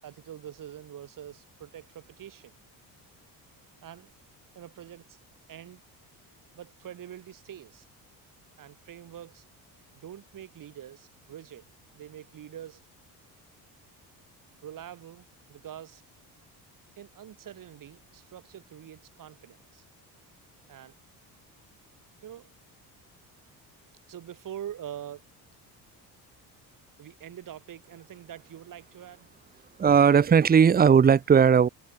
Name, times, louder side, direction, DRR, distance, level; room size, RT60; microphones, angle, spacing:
voice 1, 0.0-2.5 3.8-4.1 4.5-5.2 5.5-5.8 6.5-7.9 8.6-9.4 9.9-11.7 11.9-12.8 14.6-16.1 17.0-19.8 20.7-20.9 22.2-22.5 24.1-25.2 27.0-29.3, right 10 dB, 55° right, 5.9 m, -44 dB
voice 2, 29.8-31.7, right 7 dB, 25° right, 0.8 m, -18 dB
cardioid pair, 120°, 39 cm